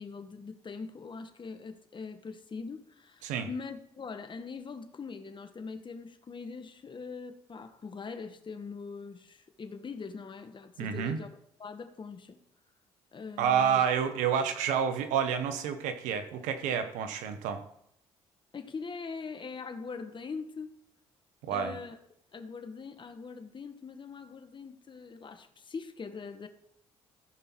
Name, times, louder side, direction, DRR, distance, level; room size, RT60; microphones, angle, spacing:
voice 1, 0.0-11.3 11.6-12.4 13.1-13.8 18.5-20.7 21.5-22.0 22.3-26.5, left 5 dB, 40° left, 8 dB, 1.5 m, -42 dB
voice 2, 10.8-11.2 13.4-17.6 21.4-21.8, right 8 dB, 80° right, 9 dB, 1.2 m, -29 dB
14.5 x 5.5 x 4.6 m, 0.73 s
hypercardioid pair, 55°, 13 cm